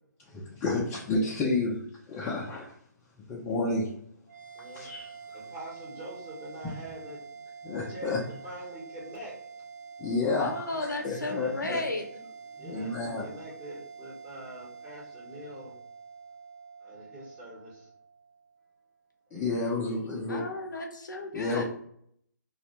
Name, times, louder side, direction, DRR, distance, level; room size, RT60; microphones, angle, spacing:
voice 1, 0.3-1.8 2.1-2.7 3.3-3.9 4.7-5.1 7.6-8.2 10.0-10.6 11.0-11.8 12.6-13.3 19.3-20.5 21.3-21.6, left 3 dB, 15° left, 0.4 m, -30 dB
sound 1, 4.3-18.9, right 5 dB, 70° right, 0.9 m, -47 dB
voice 2, 4.5-7.5 7.9-9.7 11.1-11.6 12.5-15.8 16.8-17.9 19.3-19.8, right 1 dB, 15° right, 1.0 m, -45 dB
voice 3, 10.4-12.2 20.3-21.6, left 2 dB, 85° left, 0.6 m, -34 dB
2.3 x 2.0 x 2.8 m
hypercardioid pair, 145°, 10 cm